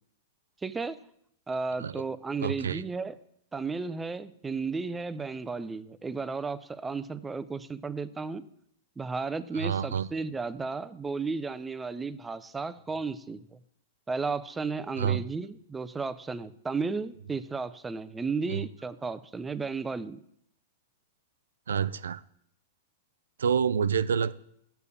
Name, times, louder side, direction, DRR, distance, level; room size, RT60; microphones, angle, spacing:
voice 1, 0.6-1.0 1.5-3.1 3.5-8.4 9.0-13.6 14.1-20.2, right 4 dB, 10° right, 14 dB, 0.5 m, -34 dB
voice 2, 2.4-2.8 9.5-10.1 15.0-15.2 18.5-18.6 21.7-22.2 23.4-24.4, right 7 dB, 90° right, 17 dB, 0.4 m, -28 dB
6.8 x 6.7 x 7.1 m, 0.71 s
hypercardioid pair, 125°, 0 cm